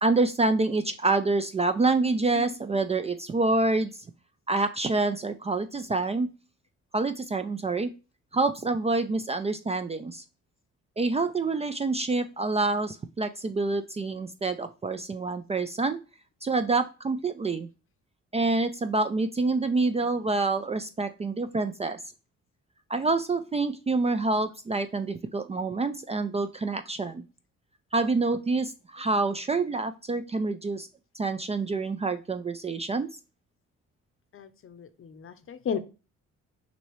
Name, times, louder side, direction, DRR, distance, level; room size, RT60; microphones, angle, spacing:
voice 1, 0.0-3.9 4.5-6.3 6.9-7.9 8.3-10.2 11.0-16.0 16.4-17.7 18.3-22.0 22.9-27.2 27.9-30.9 31.1-33.1, right 3 dB, 20° right, 9 dB, 0.4 m, -27 dB
voice 2, 34.3-35.8, left 7 dB, 45° left, 10 dB, 0.7 m, -34 dB
6.0 x 2.8 x 3.0 m, 0.31 s
cardioid pair, 90°, 30 cm